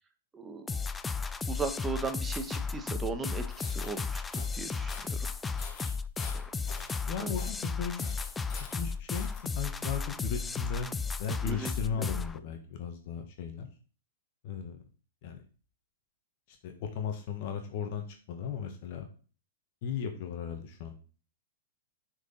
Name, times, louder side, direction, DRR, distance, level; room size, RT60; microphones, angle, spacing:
voice 1, 0.3-0.9 1.5-5.3 6.3-6.4 7.2-7.4 11.4-11.7 12.0-12.1, right 4 dB, 15° right, 7 dB, 1.1 m, -37 dB
sound 1, 0.7-12.4, left 4 dB, 15° left, 0.4 m, -34 dB
sound 2, 3.4-3.9 4.3-4.6 4.9-5.2 5.6-7.0 7.3-7.7 8.0-9.4, left 5 dB, 35° left, 1.8 m, -46 dB
voice 2, 7.1-8.1 8.5-10.9 11.2-13.7 14.4-14.8 15.2-15.4 16.6-19.1 19.8-21.0, left 7 dB, 50° left, 5 dB, 1.5 m, -36 dB
6.6 x 4.8 x 5.4 m, 0.38 s
hypercardioid pair, 115°, 0 cm